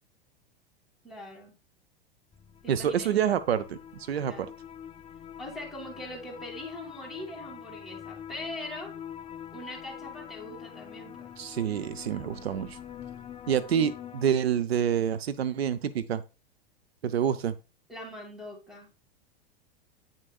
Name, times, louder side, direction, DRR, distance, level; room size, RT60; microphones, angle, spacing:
voice 1, 1.0-1.5 2.6-3.2 4.2-4.5 5.4-8.9 9.5-11.3 17.9-18.9, left 1 dB, ahead, 1 dB, 2.7 m, -42 dB
sound 1, 2.3-14.3, left 9 dB, 20° left, 0.5 m, -44 dB
voice 2, 2.7-4.5 11.4-12.8 13.5-16.2 17.0-17.5, right 9 dB, 90° right, 13 dB, 0.6 m, -27 dB
8.7 x 6.4 x 2.3 m, 0.29 s
hypercardioid pair, 100°, 30 cm